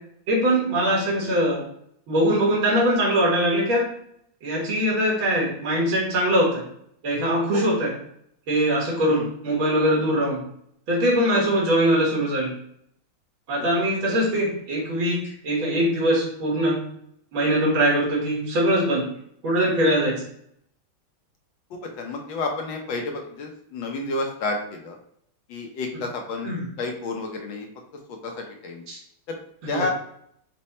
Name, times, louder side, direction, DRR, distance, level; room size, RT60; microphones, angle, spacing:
voice 1, 0.3-1.6 2.1-3.9 4.4-6.7 7.0-7.9 8.5-10.4 10.9-12.5 13.5-16.8 17.3-19.1 19.4-20.3 26.4-26.7 28.9-29.0 29.6-29.8, equal, 75° right, -3 dB, 2.3 m, -22 dB
voice 2, 21.7-25.0 25.5-26.5 26.8-27.7 28.1-28.8 29.3-29.4 29.7-29.9, left 3 dB, 75° left, 2 dB, 1.4 m, -30 dB
5.3 x 2.2 x 4.2 m, 0.69 s
omnidirectional pair, 2.3 m